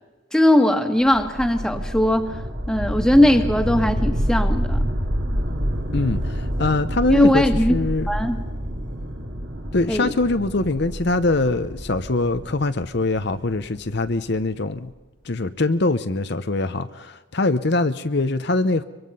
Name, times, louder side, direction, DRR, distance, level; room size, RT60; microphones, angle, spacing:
voice 1, 0.3-2.4 2.7-4.9 7.1-7.7 8.1-8.4 9.9-10.1, left 1 dB, 5° left, 5 dB, 1.6 m, -19 dB
sound 1, 1.0-14.1, equal, 60° right, 3.0 m, -27 dB
voice 2, 5.9-7.4 7.7-8.1 9.7-14.9 15.2-18.8, left 2 dB, 55° left, 10 dB, 0.8 m, -23 dB
23.5 x 23.5 x 5.5 m, 1.2 s
head